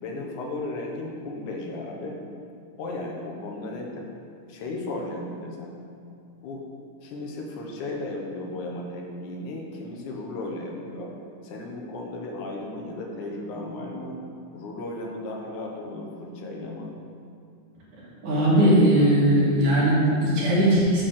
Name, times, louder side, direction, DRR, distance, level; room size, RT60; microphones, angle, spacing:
voice 1, 0.0-2.2 2.8-4.1 4.5-5.8 6.4-6.6 7.0-11.1 11.4-14.2 14.5-17.0, left 2 dB, 75° left, -1 dB, 2.5 m, -35 dB
voice 2, 18.2-21.0, right 1 dB, 65° right, -7 dB, 3.7 m, -19 dB
8.1 x 6.0 x 6.5 m, 2.5 s
omnidirectional pair, 3.7 m